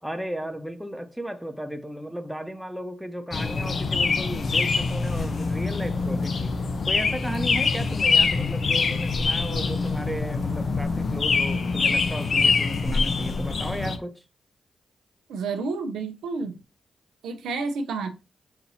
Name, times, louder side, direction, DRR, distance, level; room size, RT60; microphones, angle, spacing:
voice 1, 0.0-6.5 6.9-14.2, equal, ahead, 0.8 m, -35 dB
sound 1, 3.3-14.0, left 4 dB, 55° left, 0.5 m, -24 dB
voice 2, 15.3-16.6 17.2-18.1, right 4 dB, 80° right, 0.5 m, -30 dB
5.7 x 2.7 x 2.7 m
supercardioid pair, 40°, 0 cm